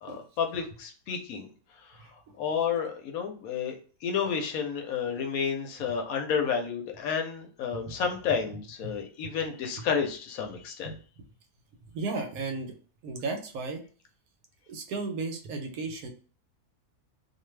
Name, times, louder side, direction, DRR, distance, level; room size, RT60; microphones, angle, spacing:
voice 1, 0.0-1.5 1.8-3.8 4.0-10.9, left 7 dB, 70° left, 4 dB, 1.0 m, -31 dB
voice 2, 11.9-12.8 13.0-13.8 14.7-16.1, right 3 dB, 75° right, 5 dB, 1.0 m, -35 dB
2.5 x 2.2 x 3.1 m, 0.40 s
omnidirectional pair, 1.6 m